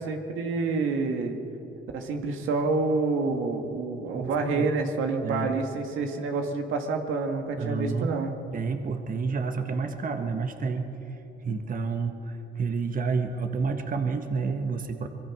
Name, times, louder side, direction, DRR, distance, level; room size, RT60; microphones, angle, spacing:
voice 1, 0.0-1.4 1.9-8.3, right 3 dB, 90° right, 3 dB, 2.1 m, -28 dB
voice 2, 4.1-4.7 5.2-5.6 7.6-8.1 8.5-10.9 11.4-15.1, right 4 dB, 45° right, 6 dB, 1.5 m, -29 dB
24.0 x 22.5 x 6.2 m, 3.0 s
cardioid pair, 90°, 20 cm